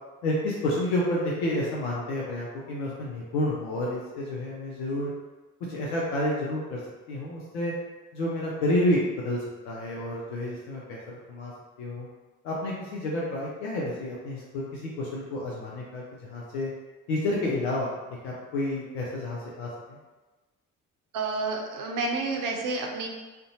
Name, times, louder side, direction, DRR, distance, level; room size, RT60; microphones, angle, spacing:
voice 1, 0.2-5.1 5.7-6.8 7.1-7.7 8.1-11.5 11.8-12.1 12.4-16.7 17.1-17.9 18.2-20.0, left 1 dB, 75° left, -5 dB, 0.6 m, -30 dB
voice 2, 21.1-23.1, right 3 dB, 50° right, 0 dB, 0.6 m, -29 dB
2.5 x 2.1 x 2.7 m, 1.2 s
figure-of-eight pair, 45°, 42 cm